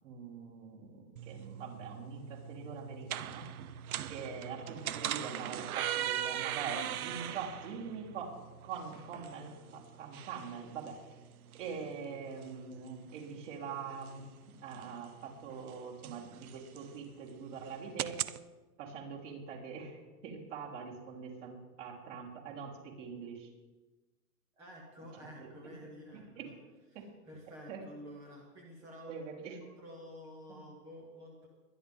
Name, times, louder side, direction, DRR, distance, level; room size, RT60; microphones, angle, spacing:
voice 1, 0.0-3.5 4.1-8.4 8.6-11.0 11.5-14.3 14.6-18.2 18.8-23.5 25.2-26.5 26.9-27.1 27.7-27.8 29.1-29.6, right 6 dB, 50° right, -2 dB, 3.8 m, -44 dB
sound 1, 1.2-18.4, right 11 dB, 65° right, 0.7 m, -41 dB
voice 2, 4.1-4.4 24.6-26.5 26.9-31.5, equal, 5° right, -1 dB, 0.5 m, -51 dB
22.0 x 10.5 x 3.6 m, 1.2 s
hypercardioid pair, 160°, 46 cm